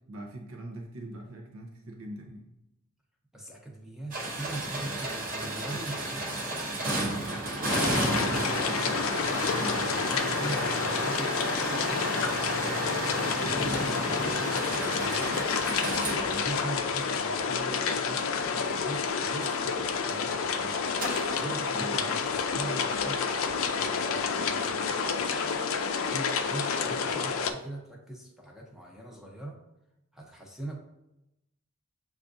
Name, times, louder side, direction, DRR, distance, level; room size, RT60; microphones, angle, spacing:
voice 1, 0.1-2.5 9.5-9.8 21.7-22.2, right 1 dB, 85° right, 1 dB, 0.6 m, -42 dB
voice 2, 3.3-8.5 9.3-15.3 16.2-20.8 21.3-25.6 26.0-29.6 30.1-30.8, right 1 dB, ahead, -1 dB, 0.6 m, -42 dB
sound 1, 4.1-17.2 21.0-21.5, right 1 dB, 40° right, 0.8 m, -32 dB
sound 2, 7.7-27.5, left 5 dB, 75° left, 0.4 m, -29 dB
6.8 x 2.4 x 2.5 m, 0.88 s
head